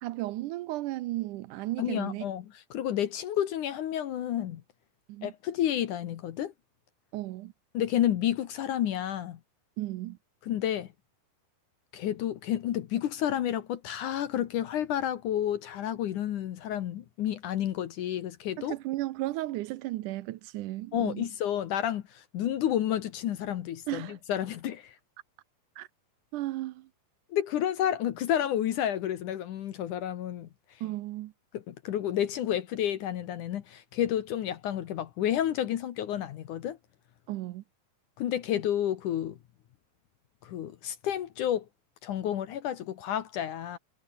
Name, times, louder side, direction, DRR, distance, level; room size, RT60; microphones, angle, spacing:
voice 1, 0.0-2.2 5.1-5.3 7.1-7.5 9.8-10.2 18.6-21.3 23.9-24.2 25.8-25.9 26.3-26.9 30.8-31.3 37.3-37.6, right 16 dB, 80° right, 1.8 m, -34 dB
voice 2, 1.8-4.6 5.2-6.5 7.7-9.4 10.4-10.9 11.9-18.8 20.9-25.0 27.3-30.8 31.5-36.8 38.2-39.4 40.4-41.7 42.0-43.8, left 11 dB, 65° left, 2.4 m, -30 dB
omnidirectional pair, 4.5 m